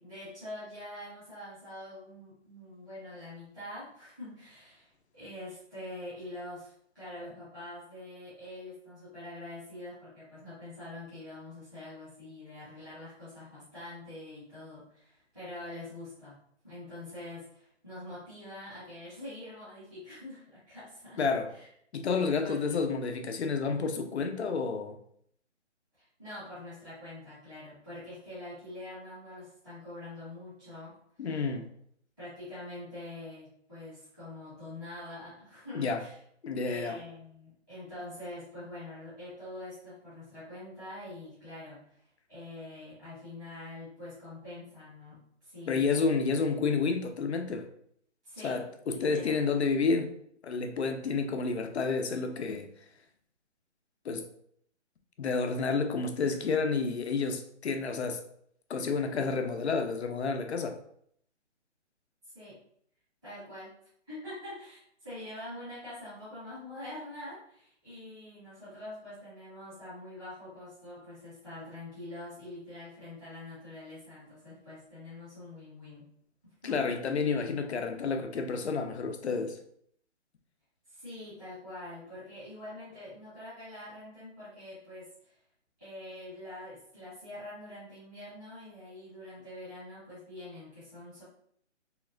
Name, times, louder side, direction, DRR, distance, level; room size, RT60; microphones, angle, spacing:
voice 1, 0.0-16.4 16.6-21.2 21.5-21.7 22.4-23.1 25.9-31.5 32.2-36.2 36.6-42.0 42.3-46.0 48.2-48.6 48.9-49.4 62.3-62.6 63.2-63.7 64.1-76.0 76.4-76.9 80.9-85.4 85.8-91.2, left 1 dB, ahead, -14 dB, 0.7 m, -45 dB
voice 2, 21.2-21.5 21.9-25.0 31.2-31.7 35.7-36.0 36.4-37.0 45.7-47.7 48.4-50.1 50.4-52.7 54.0-54.3 55.2-58.2 58.7-60.8 76.6-79.6, left 4 dB, 65° left, 6 dB, 0.6 m, -30 dB
3.2 x 2.9 x 2.5 m, 0.67 s
hypercardioid pair, 175°, 36 cm